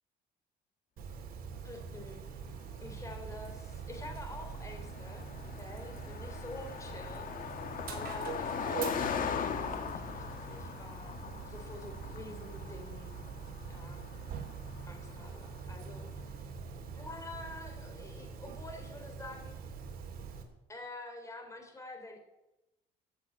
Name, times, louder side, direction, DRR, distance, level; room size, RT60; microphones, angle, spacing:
Dog, 1.0-20.4, right 6 dB, 60° right, 3.1 m, -44 dB
voice 1, 1.6-2.2 2.8-9.0 9.4-11.2 11.5-13.3 13.7-14.2 14.8-16.3 16.9-19.6 20.7-22.2, left 2 dB, 20° left, 4 dB, 3.8 m, -48 dB
Car passing by, 2.5-16.2, left 7 dB, 55° left, 1.7 m, -41 dB
14.5 x 7.6 x 9.8 m, 0.98 s
cardioid pair, 110°, 17 cm